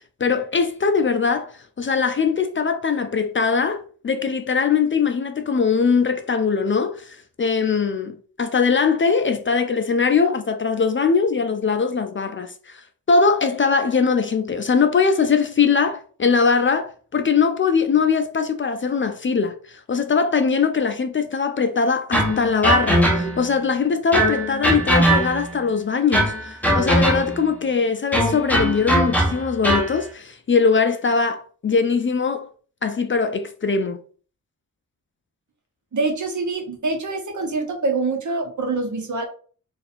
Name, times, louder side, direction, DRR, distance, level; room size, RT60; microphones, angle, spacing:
voice 1, 0.2-32.5 32.8-34.0, left 5 dB, 35° left, 0.4 m, -21 dB
sound 1, 22.1-23.5 24.1-25.6 26.1-27.5 28.1-30.0, right 1 dB, 5° left, 0.8 m, -20 dB
voice 2, 35.9-39.2, right 3 dB, 60° right, 1.0 m, -25 dB
2.7 x 2.5 x 4.1 m
wide cardioid pair, 90°, 34 cm